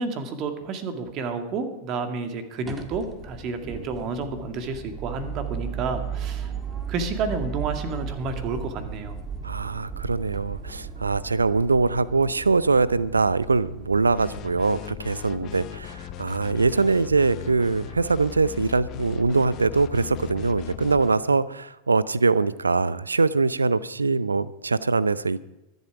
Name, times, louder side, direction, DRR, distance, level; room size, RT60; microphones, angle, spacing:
voice 1, 0.0-6.5 6.9-9.2, right 4 dB, 40° right, 7 dB, 2.2 m, -30 dB
sound 1, 2.6-14.4, right 6 dB, 15° right, 2.0 m, -36 dB
voice 2, 9.4-25.4, right 4 dB, 85° right, 19 dB, 0.5 m, -23 dB
sound 2, 14.1-21.2, left 11 dB, 40° left, 1.1 m, -38 dB
24.0 x 8.1 x 4.9 m, 0.96 s
figure-of-eight pair, 90°, 0 cm